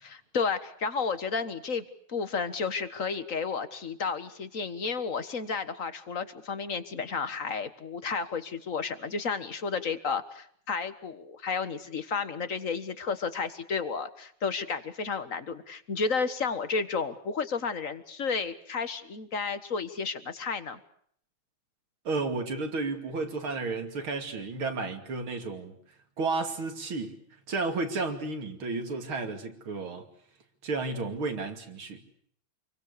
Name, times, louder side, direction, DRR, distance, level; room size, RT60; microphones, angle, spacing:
voice 1, 0.0-20.8, left 5 dB, 40° left, 1.7 m, -32 dB
voice 2, 22.1-25.7 26.2-27.2 27.5-30.1 30.6-32.0, right 3 dB, 75° right, 3.4 m, -32 dB
28.0 x 23.0 x 6.8 m
omnidirectional pair, 2.3 m